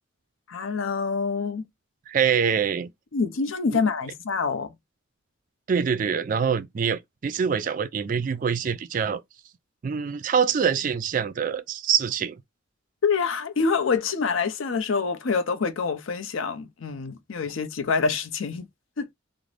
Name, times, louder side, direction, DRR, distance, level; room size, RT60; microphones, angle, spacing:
voice 1, 0.5-1.6 3.1-4.7 13.0-18.7 19.0-19.1, left 5 dB, 80° left, 0.5 m, -26 dB
voice 2, 2.1-2.9 3.7-3.8 5.7-9.2 9.8-12.4, right 7 dB, 40° right, 0.3 m, -25 dB
2.5 x 2.0 x 3.2 m
head